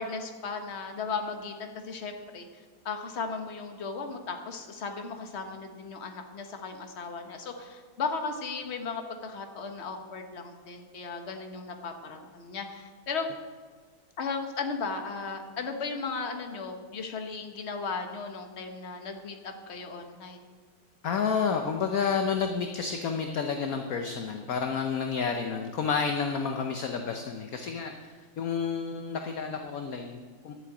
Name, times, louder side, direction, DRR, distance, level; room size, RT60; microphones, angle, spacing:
voice 1, 0.0-2.5 2.8-13.3 14.2-20.4, left 4 dB, 40° left, 5 dB, 1.3 m, -36 dB
voice 2, 21.0-27.9 28.4-30.5, left 6 dB, 60° left, 5 dB, 1.1 m, -30 dB
12.0 x 7.7 x 8.1 m, 1.5 s
omnidirectional pair, 2.1 m